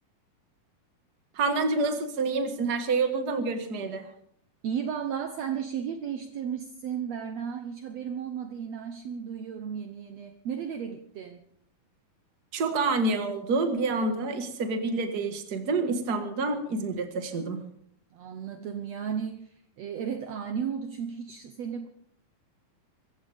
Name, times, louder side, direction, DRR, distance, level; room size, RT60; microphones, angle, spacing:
voice 1, 1.3-4.1 12.5-17.6, right 3 dB, 40° right, 6 dB, 1.4 m, -28 dB
voice 2, 4.6-11.4 18.1-21.9, right 7 dB, 80° right, 6 dB, 1.5 m, -34 dB
25.5 x 15.0 x 3.6 m, 0.67 s
omnidirectional pair, 4.4 m